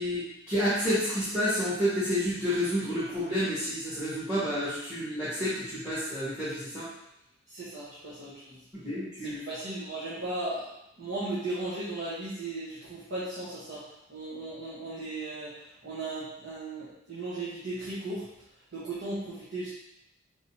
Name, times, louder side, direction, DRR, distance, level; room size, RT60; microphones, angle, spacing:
voice 1, 0.0-6.9 8.7-9.4, equal, 15° right, -14 dB, 1.5 m, -29 dB
voice 2, 7.5-8.6 9.2-18.3 18.7-19.7, right 2 dB, 60° right, -10 dB, 1.2 m, -36 dB
4.7 x 3.7 x 2.8 m, 0.82 s
head